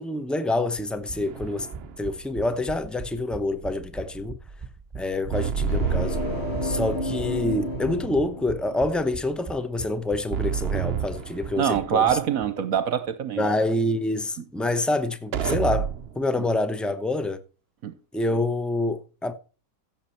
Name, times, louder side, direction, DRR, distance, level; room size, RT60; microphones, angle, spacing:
voice 1, 0.0-1.7 2.0-4.4 4.9-6.2 6.6-12.2 13.4-17.4 18.1-19.3, left 2 dB, ahead, 0.7 m, -27 dB
sound 1, 0.8-12.5 12.8-12.9 13.1-13.2, right 4 dB, 15° right, 1.5 m, -40 dB
sound 2, 1.3-2.0 5.3-7.0 10.3-12.0 15.3-16.2, right 9 dB, 55° right, 0.8 m, -30 dB
sound 3, 5.6-9.1, right 1 dB, 45° left, 2.2 m, -29 dB
voice 2, 11.6-13.5 17.8-17.9, right 9 dB, 70° right, 1.2 m, -24 dB
15.5 x 7.5 x 4.4 m
omnidirectional pair, 1.6 m